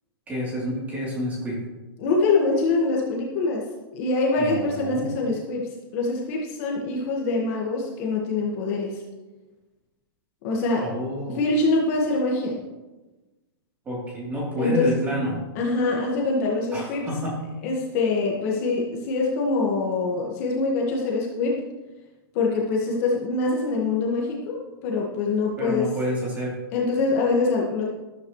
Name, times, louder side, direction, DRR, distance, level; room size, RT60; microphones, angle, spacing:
voice 1, 0.3-1.6 4.4-5.1 10.8-11.4 13.8-15.4 16.7-17.4 25.6-26.6, equal, 10° right, -5 dB, 3.3 m, -29 dB
voice 2, 2.0-3.6 3.9-9.0 10.4-10.8 11.3-12.6 14.6-14.9 15.6-17.1 17.6-21.6 22.3-25.8 26.7-27.8, left 3 dB, 35° left, -2 dB, 1.7 m, -24 dB
13.5 x 13.0 x 3.2 m, 1.2 s
supercardioid pair, 175°, 13 cm